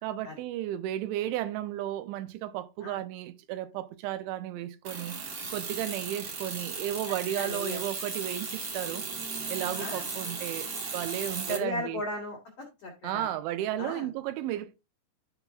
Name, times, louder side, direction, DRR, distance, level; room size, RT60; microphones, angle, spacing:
voice 1, 0.0-5.2 5.5-9.0 9.5-12.0 13.0-14.8, right 12 dB, 85° right, 2.9 m, -34 dB
sound 1, 4.8-11.6, right 4 dB, 65° right, 1.4 m, -36 dB
voice 2, 7.4-7.8 9.6-10.1 11.5-13.3 13.8-14.1, left 2 dB, 90° left, 1.3 m, -37 dB
12.5 x 5.5 x 2.3 m
omnidirectional pair, 5.3 m